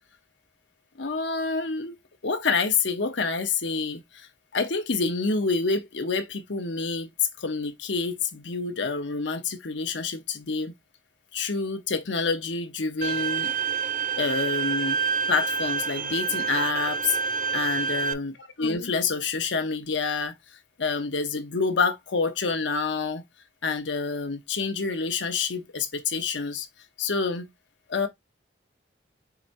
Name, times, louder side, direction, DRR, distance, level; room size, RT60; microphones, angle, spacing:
voice 1, 1.0-2.0 2.2-7.1 7.4-10.7 11.3-13.5 14.1-15.0 15.3-17.2 17.5-20.4 20.8-23.2 23.6-26.7 27.0-27.5 27.9-28.1, left 4 dB, 75° left, 0.9 m, -27 dB
Bowed string instrument, 13.0-18.1, right 5 dB, 45° right, 0.5 m, -27 dB
4.8 x 4.3 x 2.6 m
head